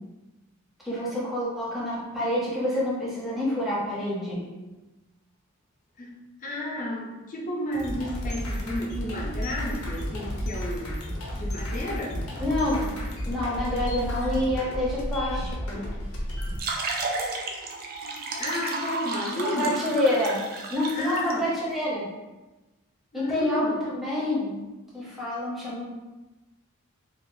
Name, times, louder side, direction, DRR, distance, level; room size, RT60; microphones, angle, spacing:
voice 1, 0.8-4.5 12.4-12.9 13.3-15.9 19.4-20.4 20.7-22.1 23.1-24.6 24.9-25.8, left 1 dB, ahead, -7 dB, 0.8 m, -27 dB
voice 2, 6.0-11.0 11.3-12.2 18.4-19.8 20.8-21.5 23.1-23.8, left 1 dB, 40° left, -1 dB, 0.5 m, -32 dB
sound 1, 7.7-16.6, equal, 80° left, 0.7 m, -32 dB
sound 2, 16.4-21.3, right 3 dB, 45° right, 0.4 m, -33 dB
3.1 x 2.3 x 2.6 m, 1.1 s
head